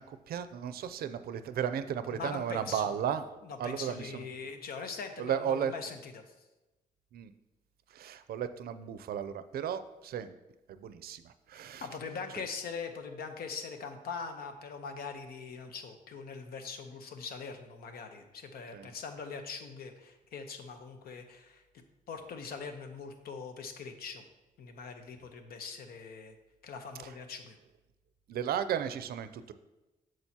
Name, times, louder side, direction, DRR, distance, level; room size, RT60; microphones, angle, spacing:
voice 1, 0.0-4.2 5.2-5.7 7.1-7.3 7.9-10.4 10.7-11.9 18.7-18.9 27.0-27.1 28.3-29.5, right 9 dB, 80° right, 12 dB, 0.5 m, -35 dB
voice 2, 2.1-2.9 3.4-6.2 11.8-21.6 22.1-24.2 24.6-26.3 26.6-27.6, left 5 dB, 80° left, 6 dB, 0.9 m, -42 dB
8.9 x 6.3 x 2.8 m, 1.1 s
cardioid pair, 125°, 15 cm